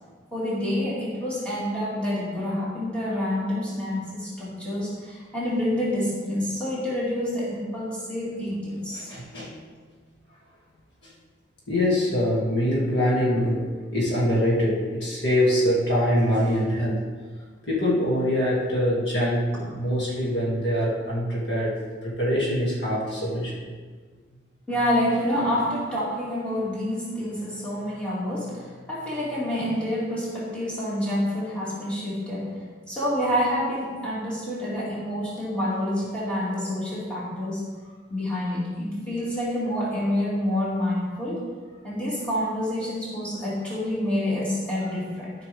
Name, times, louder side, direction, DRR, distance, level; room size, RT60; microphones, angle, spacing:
voice 1, 0.3-9.1 24.7-32.6 32.9-37.6 38.1-41.5 41.8-45.3, left 1 dB, 5° left, -9 dB, 2.4 m, -28 dB
voice 2, 8.9-9.6 11.7-17.0 17.6-21.8 22.0-23.7, equal, 65° left, -5 dB, 2.4 m, -24 dB
13.0 x 5.8 x 3.5 m, 1.5 s
head